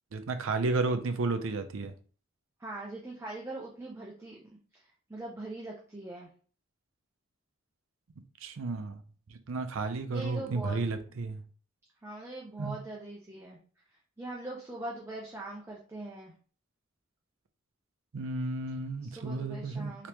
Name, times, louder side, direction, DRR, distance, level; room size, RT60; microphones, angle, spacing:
voice 1, 0.1-1.9 8.4-9.0 9.5-11.4 12.6-12.8 18.1-20.1, right 3 dB, 75° right, 0.5 m, -32 dB
voice 2, 2.6-6.3 10.1-10.8 12.0-13.6 14.2-16.3 19.0-20.1, right 2 dB, 15° right, 0.5 m, -42 dB
3.3 x 2.9 x 2.9 m
head